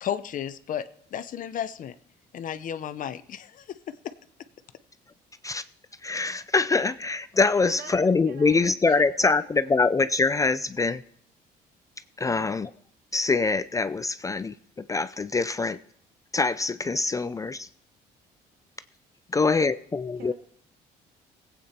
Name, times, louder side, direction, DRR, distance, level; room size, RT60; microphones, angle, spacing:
voice 1, 0.0-1.9 2.3-4.1, left 9 dB, 50° left, 12 dB, 0.8 m, -33 dB
voice 2, 6.0-11.0 12.2-12.7 13.1-15.8 16.3-17.7 19.3-20.3, left 4 dB, 20° left, 13 dB, 0.4 m, -24 dB
voice 3, 7.6-9.8 12.2-12.6 20.2-20.3, right 5 dB, 70° right, 6 dB, 2.0 m, -44 dB
19.5 x 8.6 x 4.3 m, 0.67 s
cardioid pair, 110°, 17 cm